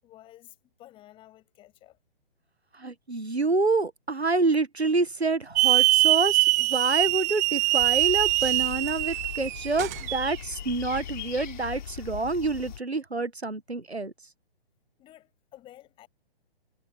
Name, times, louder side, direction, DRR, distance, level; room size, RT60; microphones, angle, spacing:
voice 1, 0.0-2.0 15.0-16.1, left 14 dB, 15° left, 7.3 m, -52 dB
voice 2, 2.7-14.1, right 3 dB, 90° right, 1.6 m, -27 dB
Hiss / Alarm, 5.6-10.4, right 20 dB, 15° right, 0.7 m, -23 dB
sound 1, 7.8-12.8, left 9 dB, 45° left, 4.1 m, -39 dB
figure-of-eight pair, 135°, 31 cm